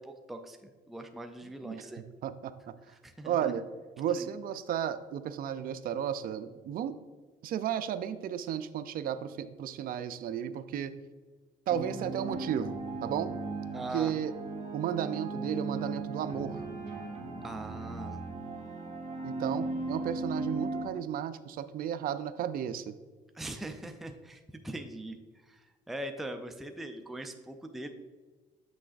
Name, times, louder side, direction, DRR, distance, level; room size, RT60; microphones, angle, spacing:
voice 1, 0.0-2.0 2.9-3.5 4.1-4.3 13.7-14.1 17.4-18.2 23.3-25.2 25.4-27.9, right 1 dB, ahead, 5 dB, 0.4 m, -41 dB
voice 2, 1.4-1.9 2.2-2.7 3.2-3.6 4.0-7.0 7.4-10.9 11.7-13.3 13.9-14.3 14.7-16.6 19.2-22.9, right 9 dB, 60° right, 12 dB, 0.5 m, -34 dB
sound 1, 11.7-20.8, right 3 dB, 40° right, 1.6 m, -37 dB
7.7 x 6.2 x 2.5 m, 1.4 s
cardioid pair, 110°, 17 cm